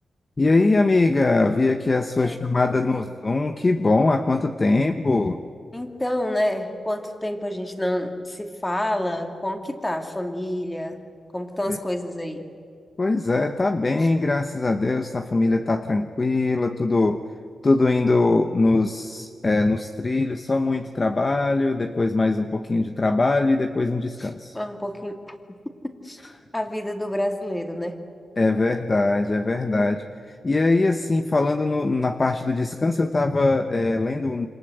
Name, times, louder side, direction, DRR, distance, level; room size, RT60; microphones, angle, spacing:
voice 1, 0.4-5.4 11.6-11.8 13.0-17.2 17.6-24.6 28.4-30.0 30.3-34.5, left 2 dB, 30° left, 7 dB, 1.1 m, -22 dB
voice 2, 2.2-3.1 5.7-11.0 11.3-12.5 14.0-14.1 24.2-25.3 25.8-26.2 26.5-28.0 29.7-30.0, left 1 dB, 15° left, 5 dB, 2.7 m, -29 dB
28.0 x 26.0 x 8.0 m, 2.4 s
wide cardioid pair, 100°, 0 cm